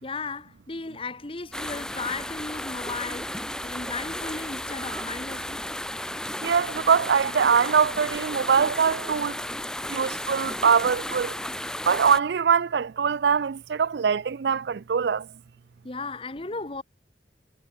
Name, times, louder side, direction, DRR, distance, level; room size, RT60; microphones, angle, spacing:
voice 1, 0.0-5.6 15.8-16.8, left 3 dB, 30° left, 1.2 m, -35 dB
sound 1, 1.5-12.2, left 1 dB, 5° left, 1.9 m, -34 dB
voice 2, 6.4-9.3 9.9-11.3 11.9-15.2, right 6 dB, 70° right, 0.4 m, -23 dB
head